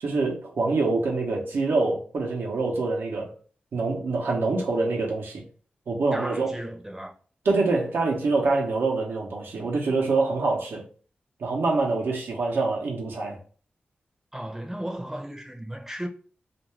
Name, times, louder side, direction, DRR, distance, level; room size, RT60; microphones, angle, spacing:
voice 1, 0.0-3.3 3.7-5.4 5.9-6.5 7.4-10.8 11.4-13.4, right 3 dB, 85° right, 0.7 m, -25 dB
voice 2, 6.1-7.1 14.3-16.1, right 1 dB, 10° right, 0.6 m, -35 dB
2.5 x 2.2 x 3.1 m
cardioid pair, 60°, 4 cm